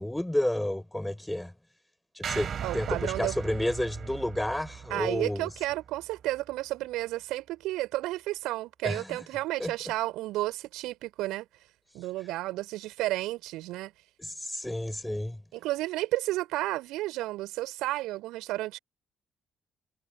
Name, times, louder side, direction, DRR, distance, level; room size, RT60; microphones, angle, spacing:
voice 1, 0.0-1.5 2.1-5.5 8.8-9.2 9.6-9.7 14.2-15.4, left 1 dB, 10° left, 4.5 m, -31 dB
sound 1, 2.2-6.5, right 8 dB, 50° right, 2.8 m, -38 dB
voice 2, 2.6-3.3 4.9-11.5 11.9-13.9 15.5-18.8, right 17 dB, 65° right, 4.7 m, -32 dB
figure-of-eight pair, 45°, 0 cm